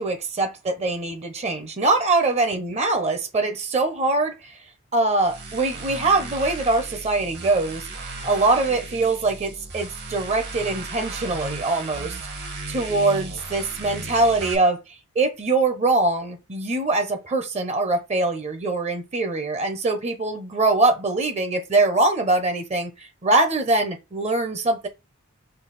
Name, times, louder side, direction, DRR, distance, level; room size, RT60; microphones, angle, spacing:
voice 1, 0.0-4.6 4.9-7.8 8.2-12.2 12.7-14.8 15.1-24.9, right 2 dB, 30° right, 0.8 m, -23 dB
sound 1, 5.2-14.6, right 3 dB, 50° right, 1.3 m, -35 dB
5.4 x 2.4 x 4.1 m
head